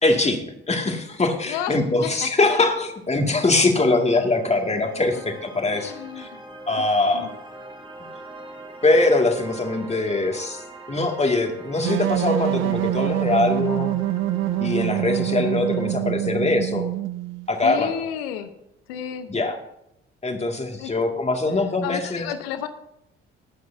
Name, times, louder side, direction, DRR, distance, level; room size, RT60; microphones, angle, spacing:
voice 1, 0.0-6.3 6.7-7.3 8.8-10.6 10.9-14.0 14.6-16.9 17.5-17.9 19.3-19.5 20.2-22.3, left 2 dB, 20° left, 3 dB, 2.2 m, -22 dB
voice 2, 1.5-2.3 5.7-6.5 6.8-7.3 17.6-18.5 18.9-19.3 20.8-20.9 21.5-22.7, left 9 dB, 70° left, 10 dB, 0.9 m, -32 dB
sound 1, 3.1-16.0, right 1 dB, 15° right, 2.5 m, -42 dB
sound 2, 11.8-17.5, right 15 dB, 40° right, 0.5 m, -25 dB
20.0 x 9.2 x 2.7 m, 0.81 s
figure-of-eight pair, 45°, 32 cm